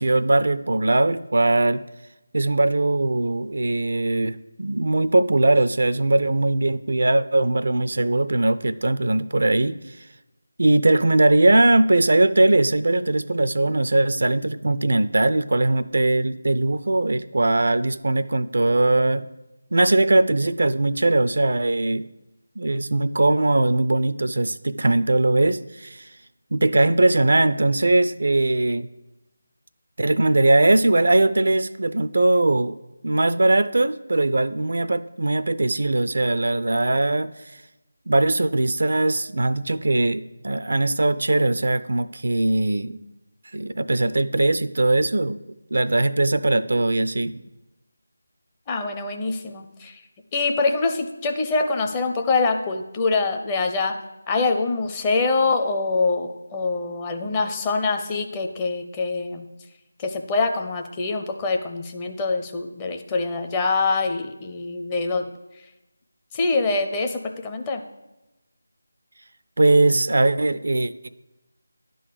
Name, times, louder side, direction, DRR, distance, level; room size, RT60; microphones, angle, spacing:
voice 1, 0.0-1.8 2.3-9.8 10.6-19.2 19.7-22.1 22.6-26.1 26.5-28.9 30.0-32.7 33.0-37.3 38.1-43.0 43.5-45.4 45.7-47.4 69.6-71.1, right 2 dB, 65° right, 13 dB, 0.4 m, -20 dB
voice 2, 48.7-50.0 50.3-54.0 54.3-59.4 60.0-65.3 66.3-67.8, left 3 dB, 15° left, 3 dB, 0.6 m, -24 dB
11.0 x 3.8 x 6.7 m, 1.0 s
figure-of-eight pair, 165°, 0 cm